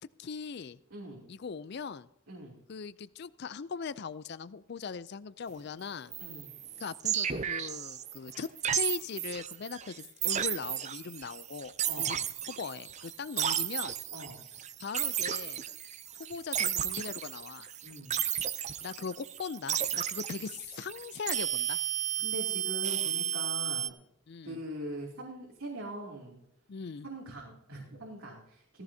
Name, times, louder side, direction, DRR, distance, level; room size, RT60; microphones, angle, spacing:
voice 1, 0.2-0.8 1.3-2.1 2.7-6.1 6.8-8.5 8.7-12.2 12.5-14.0 14.8-15.6 16.2-17.7 18.8-21.8 24.3-24.6 26.7-27.1, left 5 dB, 50° left, 16 dB, 0.4 m, -40 dB
voice 2, 0.9-1.2 2.3-2.6 6.2-6.5 11.8-12.2 14.1-14.4 17.8-18.2 22.2-23.9 24.4-26.4 27.0-28.8, right 1 dB, 90° right, -3 dB, 2.9 m, -42 dB
sound 1, 6.1-23.9, right 10 dB, 35° right, 0.5 m, -34 dB
17.0 x 15.0 x 2.8 m, 0.80 s
head